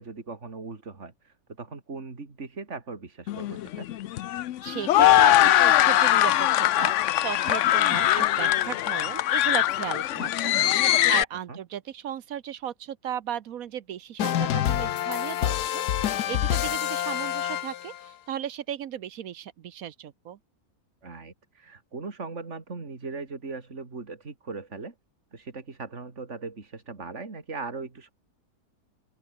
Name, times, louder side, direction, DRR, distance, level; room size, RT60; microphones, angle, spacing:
voice 1, 0.0-3.9 11.5-11.6 21.0-24.9 25.3-28.1, right 4 dB, 45° right, 3.0 m, -39 dB
sound 1, 3.3-11.2, left 13 dB, 65° left, 0.8 m, -21 dB
voice 2, 4.6-6.9 7.2-20.4, right 10 dB, 65° right, 1.2 m, -36 dB
sound 2, 14.2-18.1, left 11 dB, 85° left, 1.4 m, -27 dB
open air
omnidirectional pair, 1.7 m